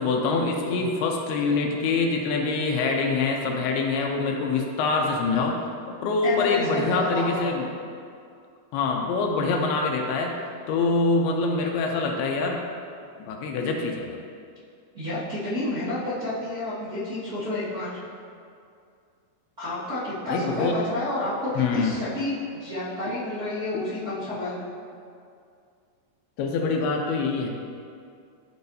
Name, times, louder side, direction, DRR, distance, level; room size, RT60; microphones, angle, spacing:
voice 1, 0.0-5.6 5.9-7.7 8.7-10.4 10.7-12.7 13.2-14.2 20.3-20.8 21.6-22.0 23.1-23.2 26.4-27.5, left 3 dB, 80° left, 1 dB, 2.5 m, -25 dB
voice 2, 6.2-7.4 11.6-11.7 14.9-18.0 19.6-24.6, left 1 dB, 45° right, -13 dB, 1.2 m, -30 dB
12.5 x 4.6 x 2.7 m, 2.3 s
omnidirectional pair, 4.7 m